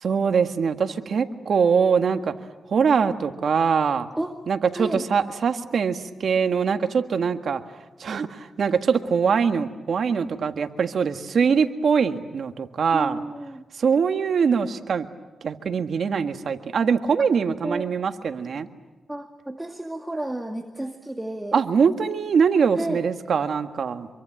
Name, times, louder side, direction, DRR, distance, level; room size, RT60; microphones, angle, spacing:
voice 1, 0.0-2.3 2.7-4.1 4.5-7.6 8.0-13.2 13.7-15.1 15.4-18.7 21.5-24.1, right 6 dB, 65° right, 7 dB, 1.7 m, -23 dB
voice 2, 12.9-13.6 17.6-17.9 19.1-21.6 22.7-23.0, right 1 dB, 10° right, 4 dB, 2.0 m, -31 dB
26.5 x 24.0 x 9.0 m, 1.1 s
cardioid pair, 80°, 0 cm